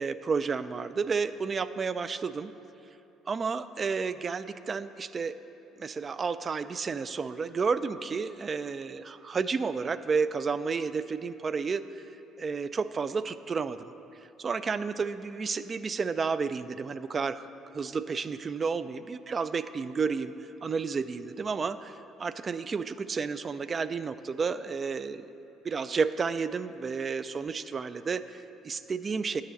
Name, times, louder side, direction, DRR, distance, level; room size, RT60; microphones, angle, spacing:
voice 1, 0.0-2.5 3.3-5.4 5.8-11.8 12.4-13.9 14.4-17.5 17.7-20.3 20.6-21.9 22.2-25.3 25.6-29.4, right 5 dB, 40° right, 13 dB, 0.3 m, -31 dB
10.0 x 6.5 x 4.0 m, 2.9 s
hypercardioid pair, 65°, 0 cm